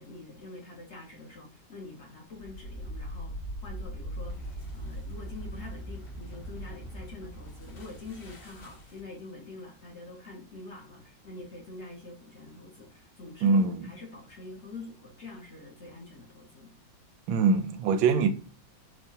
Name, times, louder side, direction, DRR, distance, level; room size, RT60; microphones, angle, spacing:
voice 1, 0.0-3.3 3.6-16.7, left 3 dB, 50° left, 0.9 m, -45 dB
sound 1, 2.3-9.2, equal, 65° left, 1.7 m, -40 dB
voice 2, 13.4-13.9 17.3-18.3, right 4 dB, 85° right, 1.3 m, -23 dB
4.6 x 2.3 x 2.7 m
omnidirectional pair, 2.0 m